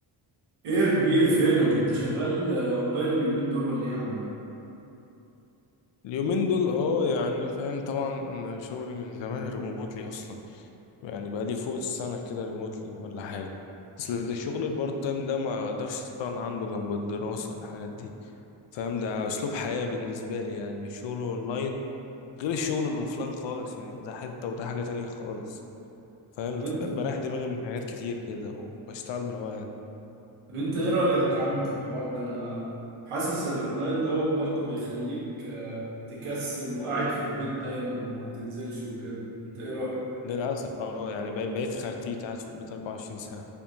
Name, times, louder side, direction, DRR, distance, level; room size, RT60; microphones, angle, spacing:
voice 1, 0.6-4.2 26.5-27.2 30.5-32.6 33.1-35.8 36.1-40.0, right 2 dB, 85° right, -7 dB, 1.1 m, -28 dB
voice 2, 6.0-10.7 11.0-13.5 14.0-18.1 18.7-21.8 22.4-25.6 26.4-29.7 40.2-43.5, left 4 dB, 65° left, 4 dB, 0.5 m, -32 dB
4.4 x 2.7 x 2.7 m, 2.9 s
cardioid pair, 60°, 50 cm